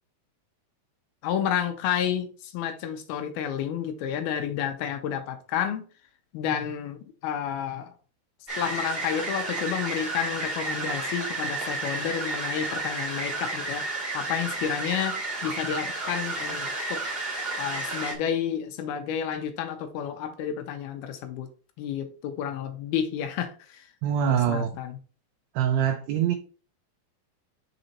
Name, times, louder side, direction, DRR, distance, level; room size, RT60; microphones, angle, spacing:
voice 1, 1.2-5.9 6.3-7.9 8.6-13.9 14.1-17.0 17.6-21.5 21.8-23.9 24.3-25.0, left 9 dB, 80° left, 2.5 m, -30 dB
sound 1, 8.5-18.1, right 2 dB, 25° right, 1.1 m, -31 dB
voice 2, 24.0-24.7 25.5-26.3, right 9 dB, 80° right, 2.3 m, -24 dB
6.6 x 4.0 x 4.1 m
omnidirectional pair, 4.8 m